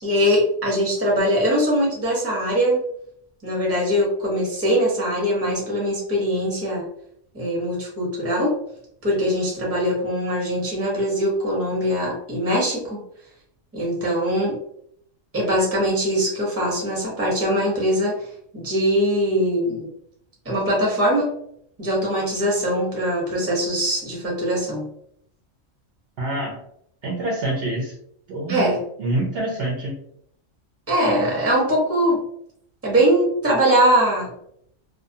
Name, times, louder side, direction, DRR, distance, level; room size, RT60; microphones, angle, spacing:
voice 1, 0.0-2.8 3.4-6.8 7.3-8.5 9.0-13.0 13.7-14.6 15.3-18.3 18.5-19.9 20.4-21.3 21.8-24.9 28.5-28.8 30.9-32.2 32.8-34.3, equal, 15° right, -3 dB, 0.7 m, -22 dB
voice 2, 26.2-26.6 27.0-27.9 28.3-28.7 29.0-30.0, right 1 dB, 60° right, -3 dB, 0.7 m, -26 dB
2.4 x 2.2 x 2.6 m, 0.69 s
omnidirectional pair, 1.3 m